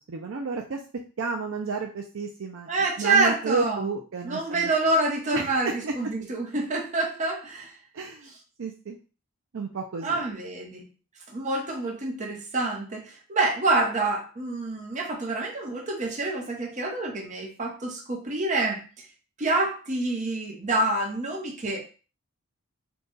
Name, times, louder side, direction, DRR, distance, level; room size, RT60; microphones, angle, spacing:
voice 1, 0.1-0.8 1.2-2.7 3.0-4.7 5.3-5.9 7.9-8.3 8.6-9.0 9.5-10.2, right 4 dB, 60° right, 2 dB, 0.5 m, -31 dB
voice 2, 2.7-3.9 4.2-7.7 10.0-10.9 11.3-18.9 19.4-21.8, right 2 dB, 35° right, 1 dB, 0.9 m, -27 dB
3.9 x 2.3 x 3.8 m, 0.34 s
head